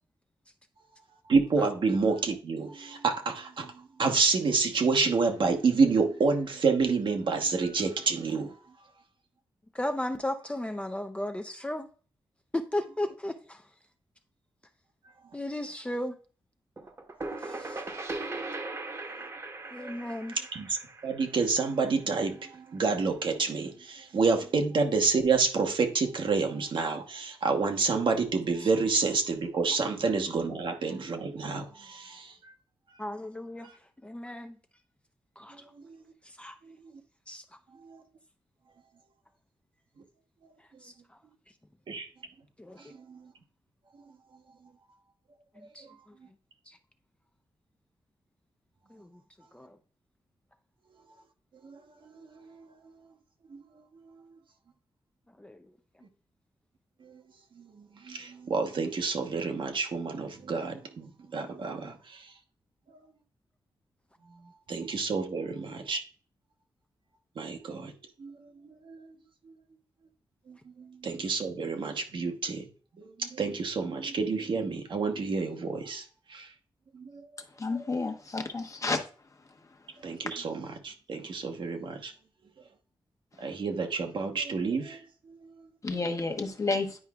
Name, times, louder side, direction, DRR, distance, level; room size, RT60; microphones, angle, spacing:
voice 1, 1.3-8.5 17.4-17.5 17.8-18.0 19.8-20.0 20.5-20.8 21.0-32.5 35.8-36.0 36.6-36.8 37.8-38.0 41.9-42.1 42.8-43.2 51.6-51.8 52.0-52.9 53.5-53.6 54.1-54.2 57.0-57.2 57.6-62.3 64.7-66.0 67.4-67.9 68.2-68.3 68.8-69.1 69.5-69.6 70.5-72.7 73.0-76.5 76.9-77.2 80.0-82.1 83.4-85.0 85.3-85.7, right 4 dB, 65° right, 1.0 m, -29 dB
voice 2, 9.7-11.9 12.5-13.6 15.3-16.2 17.4-17.8 19.7-20.4 33.0-33.7 34.0-34.6 35.4-35.6 36.2-36.6 37.3-37.4 40.8-40.9 42.6-42.8 45.7-45.8 46.7-46.8 48.9-49.2 49.5-49.8 55.4-55.7, left 1 dB, 15° left, 0.5 m, -35 dB
sound 1, 16.8-22.3, right 2 dB, 35° right, 1.0 m, -39 dB
voice 3, 77.6-79.0 85.8-87.0, left 3 dB, 35° left, 1.0 m, -30 dB
9.9 x 4.7 x 2.3 m
cardioid pair, 85°, 9 cm